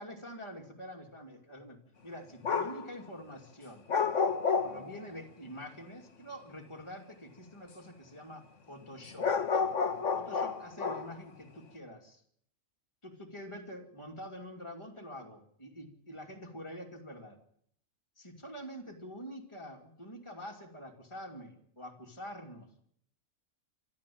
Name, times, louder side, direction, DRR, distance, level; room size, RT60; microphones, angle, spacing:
voice 1, 0.0-3.8 4.6-9.3 10.1-12.2 13.0-17.4 18.2-22.7, equal, 20° left, 1 dB, 2.9 m, -46 dB
sound 1, 2.4-2.8 3.9-5.1 9.2-11.1, left 5 dB, 65° left, 1.8 m, -30 dB
25.5 x 13.0 x 8.7 m, 0.67 s
omnidirectional pair, 1.4 m